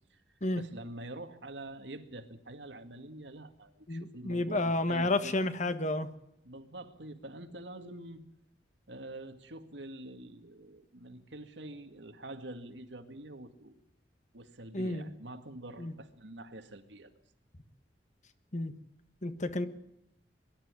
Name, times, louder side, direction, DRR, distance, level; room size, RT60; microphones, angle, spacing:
voice 1, 0.6-5.3 6.4-8.2 8.9-13.7 14.3-17.1, right 1 dB, 80° right, 8 dB, 2.1 m, -46 dB
voice 2, 3.9-6.1 14.7-15.1 15.8-15.9 18.5-18.7 19.2-19.7, left 2 dB, 45° left, 11 dB, 1.5 m, -31 dB
22.5 x 12.5 x 9.7 m, 0.80 s
head